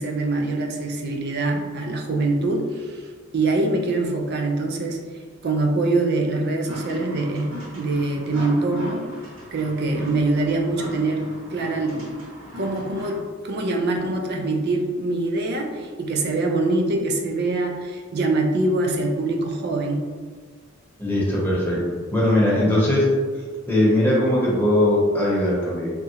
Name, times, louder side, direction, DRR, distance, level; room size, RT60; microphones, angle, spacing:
voice 1, 0.0-5.0 5.4-9.1 9.5-11.2 11.5-12.3 12.6-20.1, right 2 dB, 55° right, 2 dB, 0.4 m, -24 dB
sound 1, 6.7-13.1, left 1 dB, 75° right, 1.0 m, -38 dB
voice 2, 21.0-21.8 22.1-23.1 23.7-25.9, left 1 dB, 10° left, -6 dB, 0.8 m, -20 dB
3.5 x 2.0 x 2.8 m, 1.5 s
head